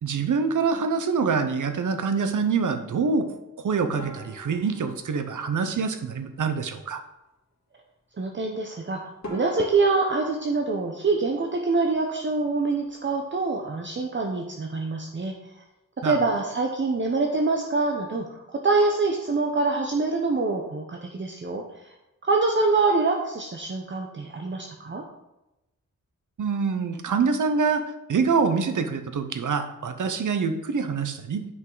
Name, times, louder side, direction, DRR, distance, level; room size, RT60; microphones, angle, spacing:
voice 1, 0.0-7.0 16.0-16.2 26.4-27.8 28.1-31.5, right 5 dB, 70° right, 8 dB, 0.9 m, -25 dB
sound 1, 4.0-6.4 8.7-8.8 9.2-12.0 12.3-13.0 13.3-13.5 13.8-13.9 14.6-14.9, left 1 dB, 55° left, 2.5 m, -45 dB
voice 2, 8.2-15.4 16.0-21.9 22.2-25.0, right 3 dB, 35° right, 1 dB, 0.7 m, -25 dB
9.6 x 5.3 x 3.9 m, 0.95 s
wide cardioid pair, 145°, 32 cm